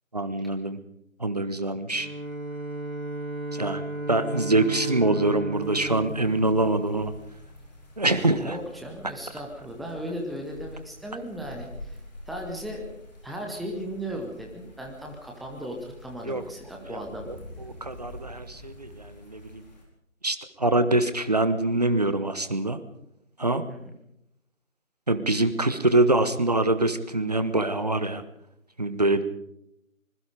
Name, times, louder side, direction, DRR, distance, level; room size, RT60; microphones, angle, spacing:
voice 1, 0.1-0.8 1.2-2.1 3.5-3.8 4.1-7.1 8.0-8.6 16.3-16.4 17.8-19.6 20.2-22.8 23.4-23.6 25.1-28.2 28.8-29.2, right 2 dB, 30° right, 11 dB, 1.3 m, -24 dB
Bowed string instrument, 1.9-7.5, right 2 dB, 85° right, 2.8 m, -35 dB
sound 1, 5.6-19.8, left 1 dB, 30° left, 4.8 m, -47 dB
voice 2, 8.1-12.0 12.3-12.9 13.2-17.3 23.7-23.8, equal, ahead, 0 dB, 0.7 m, -36 dB
25.5 x 21.0 x 5.1 m, 0.79 s
figure-of-eight pair, 165°, 41 cm